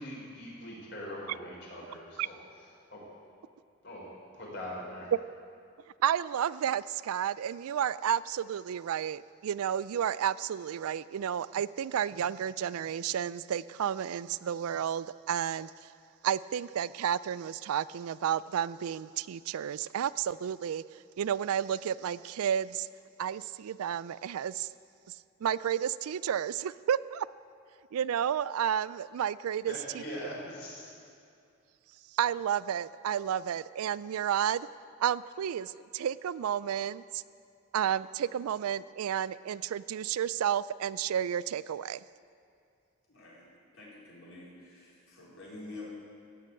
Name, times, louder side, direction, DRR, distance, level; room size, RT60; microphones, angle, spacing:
voice 1, 0.0-2.4 2.9-3.0 3.8-4.1 4.3-5.1 29.7-30.9, equal, 50° left, -4 dB, 4.5 m, -42 dB
voice 2, 6.0-15.9 16.2-20.8 21.2-22.9 23.2-24.7 25.4-27.3 27.9-30.0 32.1-34.7 35.0-37.2 37.7-42.0, right 9 dB, 85° right, 18 dB, 0.3 m, -31 dB
voice 3, 43.1-45.9, left 2 dB, 65° left, -6 dB, 4.5 m, -48 dB
15.5 x 7.7 x 8.4 m, 2.4 s
head